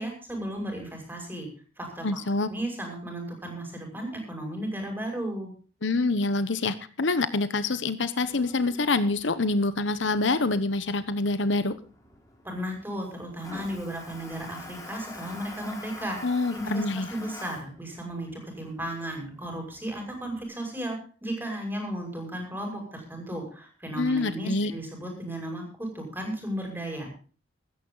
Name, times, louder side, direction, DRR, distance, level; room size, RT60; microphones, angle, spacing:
voice 1, 0.0-1.5 1.8-2.2 2.5-5.5 12.4-27.1, right 1 dB, 10° right, 2 dB, 6.0 m, -35 dB
voice 2, 2.0-2.5 5.8-11.8 16.2-17.1 23.9-24.7, left 3 dB, 70° left, 13 dB, 1.0 m, -26 dB
Toilet flush, 8.2-20.4, left 2 dB, 20° left, 3.8 m, -47 dB
16.0 x 13.5 x 4.0 m, 0.39 s
head